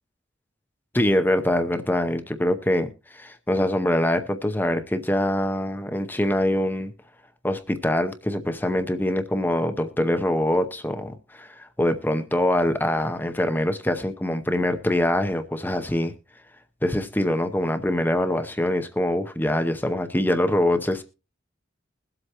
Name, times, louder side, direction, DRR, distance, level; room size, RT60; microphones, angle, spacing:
voice 1, 0.9-6.9 7.4-16.1 16.8-21.0, left 1 dB, 10° left, 0.7 m, -24 dB
21.0 x 7.9 x 2.9 m
head